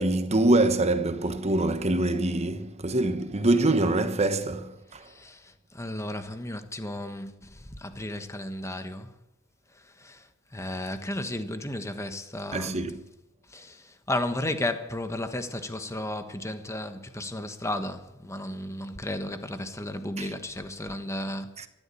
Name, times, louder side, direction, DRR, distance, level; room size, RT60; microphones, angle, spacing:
voice 1, 0.0-4.7 12.5-13.0 20.2-20.3, right 2 dB, 30° right, 1.2 m, -24 dB
voice 2, 5.0-9.1 9.8-10.3 10.5-12.9 13.5-21.7, left 1 dB, 15° left, 1.3 m, -34 dB
14.5 x 12.0 x 8.5 m
head